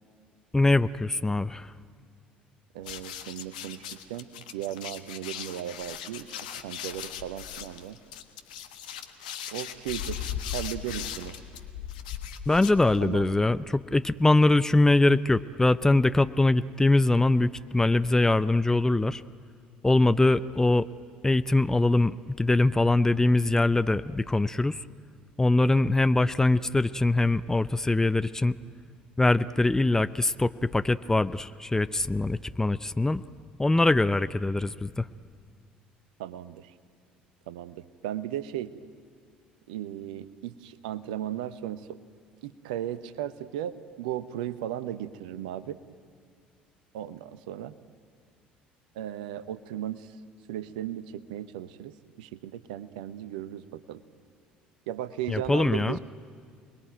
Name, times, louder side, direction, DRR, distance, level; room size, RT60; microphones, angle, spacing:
voice 1, 0.5-1.7 12.5-19.2 19.8-20.9 21.2-24.8 25.4-28.6 29.2-33.2 33.6-35.1 55.3-56.0, left 2 dB, 10° left, 14 dB, 0.6 m, -23 dB
voice 2, 2.7-6.3 6.6-8.0 9.5-11.4 13.0-13.4 36.2-36.7 37.5-38.7 39.7-42.0 42.4-45.8 46.9-47.7 48.9-50.1 50.5-54.0 54.9-56.0, right 11 dB, 70° right, 14 dB, 0.9 m, -36 dB
sound 1, 2.8-13.3, left 9 dB, 70° left, 1.3 m, -38 dB
29.0 x 21.0 x 9.3 m, 2.1 s
figure-of-eight pair, 55°, 5 cm